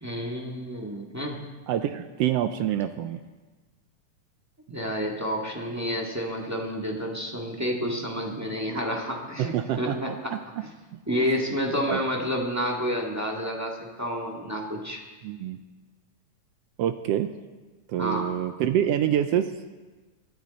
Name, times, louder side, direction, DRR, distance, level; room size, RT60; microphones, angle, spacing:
voice 1, 0.0-1.5 4.7-10.3 11.1-15.0 18.0-18.3, equal, 10° right, -2 dB, 1.1 m, -30 dB
voice 2, 1.7-3.2 9.4-10.4 11.2-11.3 11.9-12.0 15.2-15.6 16.8-17.3 17.9-19.5, right 10 dB, 85° right, 9 dB, 1.4 m, -26 dB
26.0 x 10.5 x 4.2 m, 1.3 s
omnidirectional pair, 3.4 m